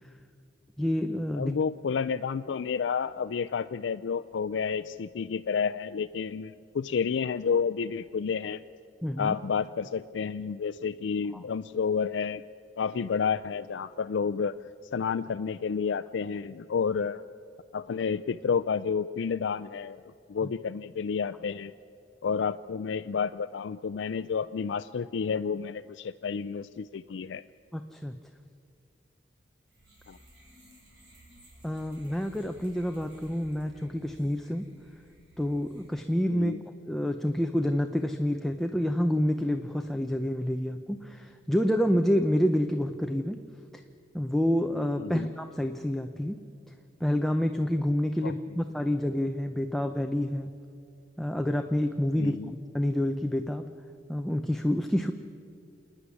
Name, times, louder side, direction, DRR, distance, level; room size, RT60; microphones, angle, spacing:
voice 1, 0.8-1.5 9.0-9.4 20.4-20.5 27.7-28.2 31.6-34.7 35.4-36.5 36.9-43.4 44.1-46.4 47.0-50.5 51.2-53.6 54.1-55.1, equal, ahead, 6 dB, 0.6 m, -28 dB
voice 2, 1.4-8.6 9.2-12.4 12.8-14.5 14.9-17.2 17.7-21.7 22.2-27.4 30.1-30.2 36.3-36.6 45.0-45.3 48.2-48.3 52.2-52.5, left 6 dB, 85° left, 11 dB, 0.4 m, -30 dB
sound 1, 29.7-36.3, right 1 dB, 70° right, 5.6 m, -56 dB
27.5 x 10.0 x 9.6 m, 2.4 s
head